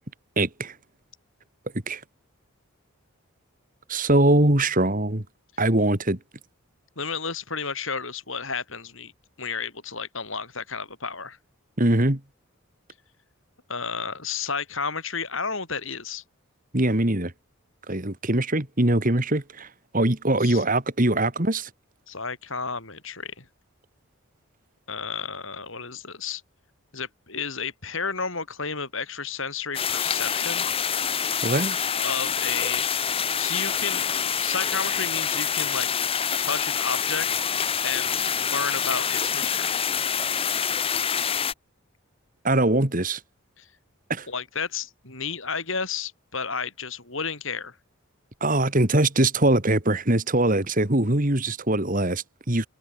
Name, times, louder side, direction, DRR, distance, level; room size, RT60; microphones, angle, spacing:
voice 1, 0.4-0.7 1.9-2.0 3.9-5.2 5.6-6.2 11.8-12.2 16.7-17.3 17.9-19.7 19.9-21.7 31.4-31.8 42.4-43.2 44.1-44.3 48.4-52.7, right 1 dB, 40° right, 2.3 m, -22 dB
voice 2, 7.0-9.1 9.4-11.4 13.7-16.2 20.4-20.6 22.1-23.4 24.9-26.4 26.9-30.7 32.0-33.1 33.4-34.1 34.4-35.9 36.4-37.3 37.8-39.8 43.6-43.7 44.3-47.8, left 5 dB, 65° left, 7.2 m, -32 dB
sound 1, 29.7-41.5, left 7 dB, 25° left, 0.9 m, -26 dB
head